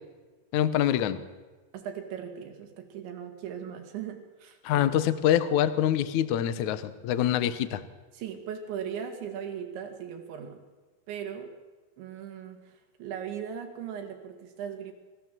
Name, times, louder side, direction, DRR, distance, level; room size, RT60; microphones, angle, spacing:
voice 1, 0.5-1.2 4.6-7.8, left 11 dB, 90° left, 12 dB, 1.6 m, -25 dB
voice 2, 1.7-4.9 8.1-10.6 11.1-11.5 12.0-14.9, right 8 dB, 85° right, 4 dB, 4.5 m, -38 dB
28.0 x 15.0 x 7.6 m, 1.3 s
omnidirectional pair, 5.1 m